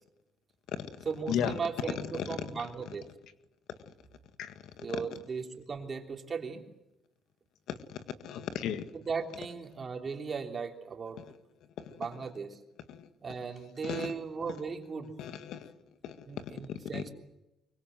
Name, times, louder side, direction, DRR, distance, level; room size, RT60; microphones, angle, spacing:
voice 1, 1.0-3.0 4.8-6.6 8.9-11.2 11.8-12.6 13.2-15.1 16.2-17.1, right 5 dB, 30° right, 3 dB, 3.3 m, -37 dB
voice 2, 8.2-8.8 13.8-14.1 15.2-15.7 16.0-16.1 16.9-17.0, left 9 dB, 75° left, 10 dB, 1.8 m, -33 dB
24.5 x 24.0 x 7.8 m, 0.94 s
cardioid pair, 140°, 0 cm